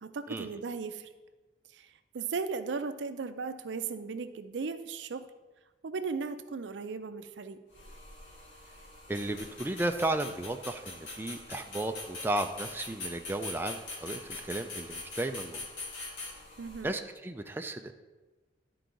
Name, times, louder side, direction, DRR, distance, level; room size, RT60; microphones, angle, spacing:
voice 1, 0.0-1.1 1.7-5.2 5.8-7.6 16.6-16.9, right 4 dB, 70° right, 10 dB, 0.5 m, -36 dB
sound 1, 7.7-16.9, left 3 dB, 80° left, 1.6 m, -43 dB
voice 2, 9.1-15.7 16.8-18.0, right 2 dB, 10° right, 5 dB, 0.3 m, -34 dB
11.5 x 4.6 x 3.8 m, 1.2 s
head